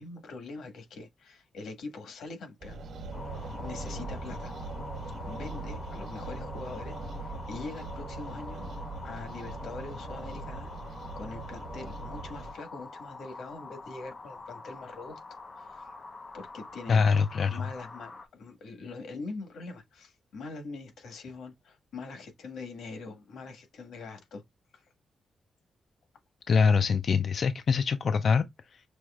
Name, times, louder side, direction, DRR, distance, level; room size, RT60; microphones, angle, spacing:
voice 1, 0.0-2.8 3.2-4.5 5.3-8.7 9.0-15.2 15.6-15.9 16.3-17.1 17.4-24.4 24.7-24.8, left 3 dB, 85° left, 1.5 m, -43 dB
sound 1, 2.6-12.5, right 2 dB, 65° right, 1.2 m, -40 dB
sound 2, 3.1-18.3, left 3 dB, 25° left, 0.8 m, -46 dB
voice 2, 16.9-17.7 26.5-28.8, left 5 dB, 50° left, 0.4 m, -24 dB
6.1 x 3.0 x 2.3 m
wide cardioid pair, 170°, 0 cm